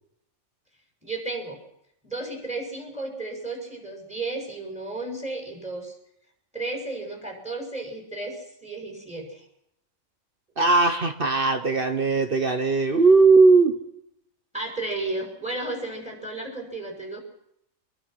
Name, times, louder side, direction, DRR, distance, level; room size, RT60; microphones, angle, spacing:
voice 1, 1.0-1.6 2.0-5.9 6.5-9.4 14.5-17.2, right 2 dB, 5° right, 2 dB, 6.5 m, -33 dB
voice 2, 10.6-13.8, right 3 dB, 45° right, 8 dB, 1.4 m, -18 dB
24.0 x 22.5 x 6.0 m, 0.77 s
omnidirectional pair, 1.4 m